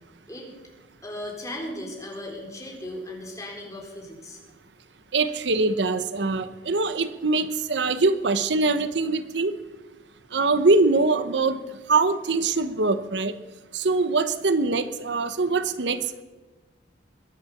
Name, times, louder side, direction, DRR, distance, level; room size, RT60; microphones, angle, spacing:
voice 1, 1.0-4.4, left 1 dB, 15° left, -1 dB, 4.0 m, -37 dB
voice 2, 5.1-9.5 10.3-11.6 11.9-13.3 13.7-16.2, right 3 dB, 70° right, 12 dB, 0.9 m, -23 dB
22.0 x 8.5 x 7.2 m, 1.2 s
head